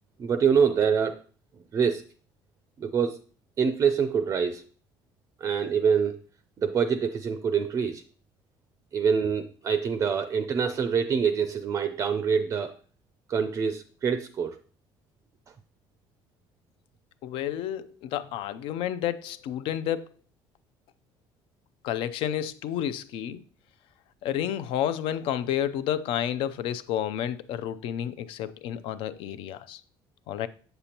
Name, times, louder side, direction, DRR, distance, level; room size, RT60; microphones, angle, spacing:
voice 1, 0.2-1.2 1.7-2.0 2.8-3.2 3.6-4.6 5.4-6.2 6.6-8.0 8.9-12.8 13.3-14.6, right 6 dB, 30° right, 0.4 m, -25 dB
voice 2, 17.2-20.1 21.8-23.4 24.2-29.8 30.3-30.5, left 10 dB, 75° left, 0.5 m, -30 dB
7.8 x 6.7 x 2.9 m
cardioid pair, 145°, 9 cm